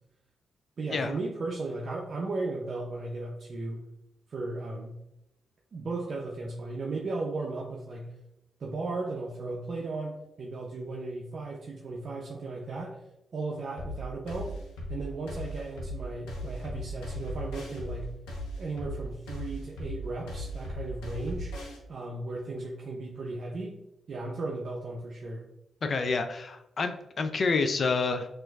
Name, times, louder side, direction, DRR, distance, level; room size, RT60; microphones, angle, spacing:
voice 1, 0.8-3.8 4.3-5.0 5.7-8.1 8.6-13.0 13.3-14.5 14.9-18.1 18.6-21.5 21.9-23.8 24.1-25.4, right 3 dB, 60° right, -1 dB, 0.4 m, -36 dB
sound 1, 13.8-21.8, equal, 90° left, 0.7 m, -37 dB
voice 2, 25.8-28.3, left 4 dB, 55° left, 7 dB, 0.3 m, -28 dB
4.2 x 2.5 x 2.3 m, 0.86 s
supercardioid pair, 50°, 0 cm